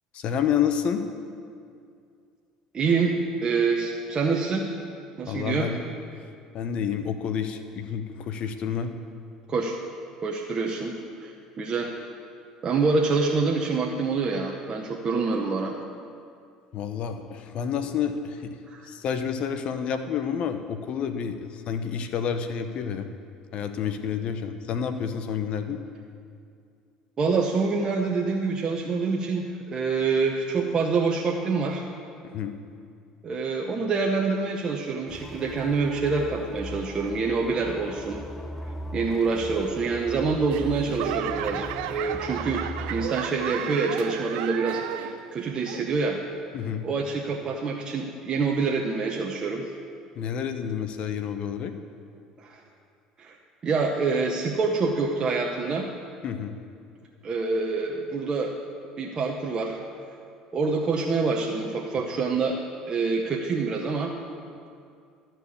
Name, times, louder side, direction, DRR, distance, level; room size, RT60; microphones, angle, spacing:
voice 1, 0.1-1.0 5.3-5.8 6.2-8.9 16.7-18.6 18.9-23.1 23.5-25.8 32.3-32.5 46.5-46.9 50.2-51.7 56.2-56.6, left 7 dB, 55° left, 8 dB, 0.7 m, -29 dB
voice 2, 2.7-3.1 3.4-4.7 5.2-5.7 9.5-9.8 10.2-10.9 11.2-11.9 12.6-15.7 18.7-18.9 27.2-31.8 33.2-38.2 38.9-42.6 42.9-46.2 46.8-49.7 52.4-52.6 53.2-53.4 53.6-55.9 57.2-58.5 59.0-59.8 60.5-62.6 62.9-64.1, right 4 dB, 35° right, 0 dB, 0.9 m, -26 dB
sound 1, 35.1-43.1, left 1 dB, 10° left, 0.7 m, -39 dB
Laughter / Clapping / Crowd, 40.5-45.3 45.6-46.1 46.7-46.8, right 12 dB, 75° right, 0.4 m, -34 dB
13.0 x 4.6 x 8.3 m, 2.4 s
supercardioid pair, 80°, 2 cm